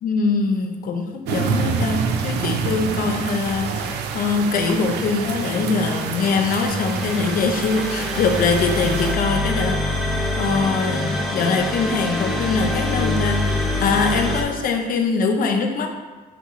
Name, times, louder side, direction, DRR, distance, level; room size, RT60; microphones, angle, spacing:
voice 1, 0.0-15.9, left 4 dB, 55° left, 5 dB, 0.8 m, -23 dB
sound 1, 1.3-9.1, right 5 dB, 85° right, 0.6 m, -27 dB
sound 2, 6.2-14.4, left 1 dB, ahead, 1.2 m, -25 dB
9.7 x 3.6 x 3.1 m, 1.3 s
cardioid pair, 110°, 17 cm